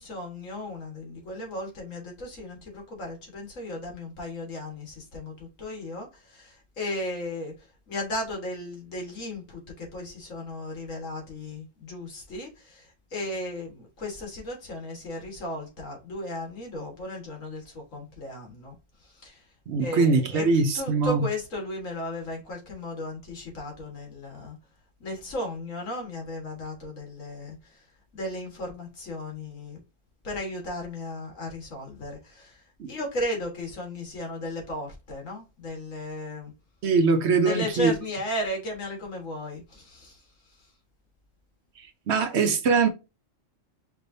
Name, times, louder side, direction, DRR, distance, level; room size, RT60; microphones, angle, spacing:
voice 1, 0.0-7.5 7.9-19.4 19.8-20.5 20.7-24.6 25.0-27.8 28.1-29.8 30.2-36.5 37.4-40.2, left 1 dB, 75° left, 2.0 m, -35 dB
voice 2, 19.7-21.2 32.8-32.9 36.8-37.9 42.1-42.9, right 4 dB, 65° right, 0.9 m, -22 dB
5.2 x 3.3 x 2.7 m
omnidirectional pair, 1.4 m